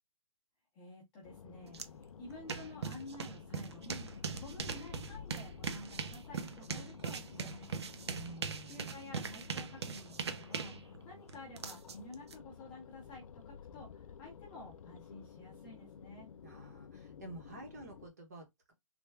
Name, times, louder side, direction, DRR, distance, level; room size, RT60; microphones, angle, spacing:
voice 1, 0.7-1.8 2.2-4.1 4.4-7.7 8.7-10.7 11.0-16.3, left 2 dB, 10° left, 0.7 m, -51 dB
sound 1, 1.2-18.1, left 7 dB, 90° left, 0.4 m, -52 dB
sound 2, 1.7-1.9 2.2-12.3, right 5 dB, 55° right, 0.5 m, -41 dB
voice 2, 8.1-8.9 16.4-18.7, right 2 dB, 30° right, 0.8 m, -50 dB
3.3 x 2.2 x 3.2 m
hypercardioid pair, 175°, 17 cm